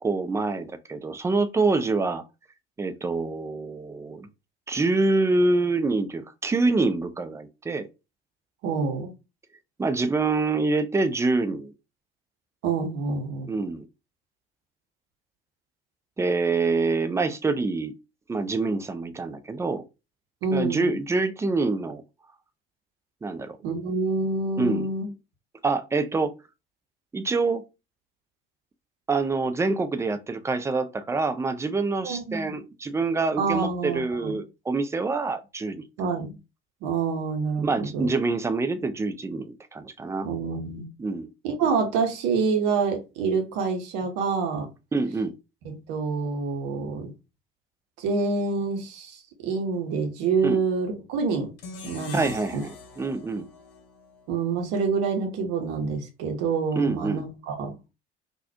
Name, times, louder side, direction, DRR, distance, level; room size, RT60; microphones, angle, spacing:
voice 1, 0.0-2.2 2.8-4.3 4.7-7.9 9.8-11.7 13.5-13.9 16.2-18.0 18.3-19.8 20.5-22.0 23.2-23.6 24.6-24.9 25.6-26.3 27.1-27.6 29.1-35.8 37.6-40.3 41.0-41.3 44.9-45.3 50.4-50.6 52.1-53.5 56.8-57.2, right 3 dB, 10° right, 0.4 m, -26 dB
voice 2, 8.6-9.1 12.6-13.5 20.4-21.0 23.6-25.1 32.0-32.4 33.4-34.4 36.0-36.3 36.8-38.1 40.2-40.9 41.4-44.7 45.6-47.1 48.0-51.5 51.8-52.6 54.3-57.7, right 4 dB, 55° right, 1.1 m, -27 dB
sound 1, 51.6-54.8, left 5 dB, 65° left, 0.8 m, -43 dB
3.9 x 2.6 x 2.7 m
figure-of-eight pair, 55°, 29 cm